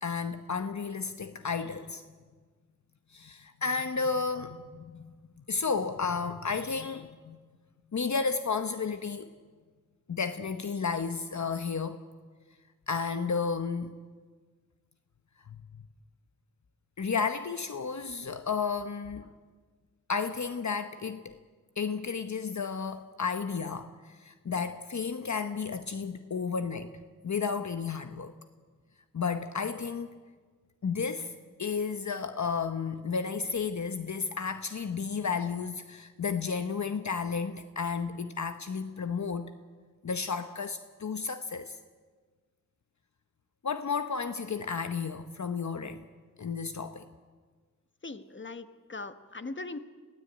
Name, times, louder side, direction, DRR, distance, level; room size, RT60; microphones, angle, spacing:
voice 1, 0.0-2.0 3.1-5.1 5.5-7.4 7.9-9.3 10.1-12.0 12.9-13.9 15.5-15.6 17.0-19.3 20.1-21.3 21.8-26.9 27.2-28.3 29.1-30.2 30.8-31.3 31.6-39.5 40.0-41.8 43.6-46.0 46.4-47.1, left 5 dB, 60° left, 9 dB, 1.0 m, -32 dB
voice 2, 48.0-49.8, left 3 dB, 35° left, 10 dB, 1.4 m, -40 dB
22.0 x 16.0 x 8.9 m, 1.5 s
cardioid pair, 50°, 32 cm